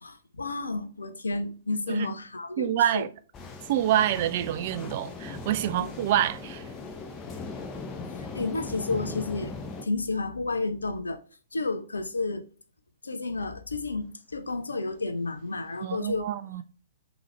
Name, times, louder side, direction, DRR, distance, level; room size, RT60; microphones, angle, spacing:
voice 1, 0.0-3.1 5.7-5.9 8.2-11.2 11.5-12.5 13.0-16.3, left 3 dB, 75° left, 0.5 m, -31 dB
voice 2, 2.6-3.1 3.7-6.7 15.8-16.6, right 11 dB, 40° right, 0.3 m, -27 dB
sound 1, 3.3-9.9, left 3 dB, 20° left, 0.7 m, -39 dB
3.8 x 2.9 x 3.1 m
figure-of-eight pair, 115°, 0 cm